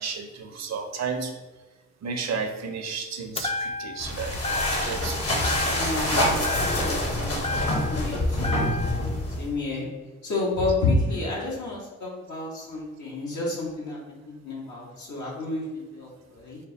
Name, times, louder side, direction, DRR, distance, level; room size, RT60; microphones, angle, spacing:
voice 1, 0.0-1.3 2.0-5.9, right 5 dB, 65° right, 5 dB, 0.6 m, -33 dB
sound 1, 3.4-4.1 4.4-5.1 5.4-6.1 6.4-8.1 8.4-9.1, left 3 dB, 20° left, 0.4 m, -32 dB
sound 2, 4.0-9.6, left 1 dB, 55° left, 1.2 m, -26 dB
voice 2, 5.7-7.4 7.9-8.5 9.4-9.8 10.2-16.6, left 2 dB, 75° left, -4 dB, 1.2 m, -30 dB
4.3 x 2.2 x 3.9 m, 1.2 s
cardioid pair, 65°, 29 cm